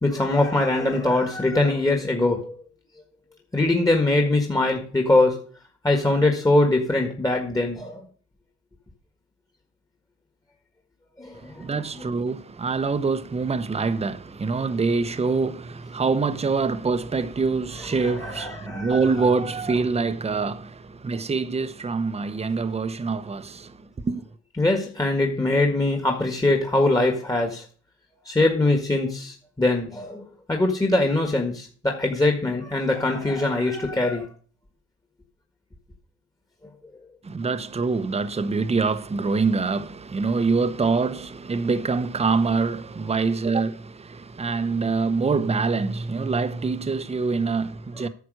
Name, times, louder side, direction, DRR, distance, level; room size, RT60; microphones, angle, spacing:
voice 1, 0.0-2.6 3.5-5.4 5.8-8.0 11.2-11.7 12.0-12.1 18.0-19.1 24.6-27.6 28.2-34.3 48.0-48.1, left 2 dB, 10° left, 1.6 m, -22 dB
voice 2, 11.4-24.3 37.2-48.1, right 4 dB, 20° right, 0.8 m, -25 dB
9.6 x 6.0 x 6.3 m
cardioid pair, 90°, 30 cm